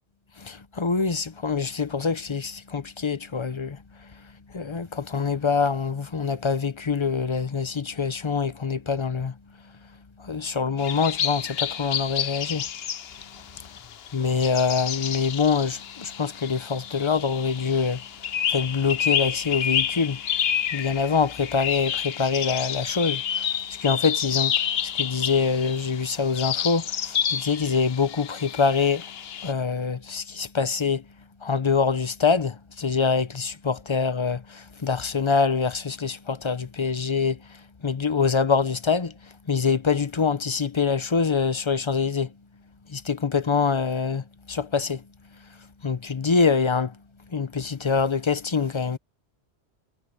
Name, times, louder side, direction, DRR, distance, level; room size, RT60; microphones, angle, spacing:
voice 1, 0.4-4.1 4.5-9.4 10.2-12.7 14.1-18.0 18.5-20.2 20.7-29.1 29.4-31.0 31.4-42.3 42.9-45.0 45.8-47.0 47.3-49.0, left 5 dB, 30° left, 0.6 m, -25 dB
sound 1, 10.8-29.5, left 8 dB, 65° left, 1.0 m, -29 dB
omnidirectional pair, 1.1 m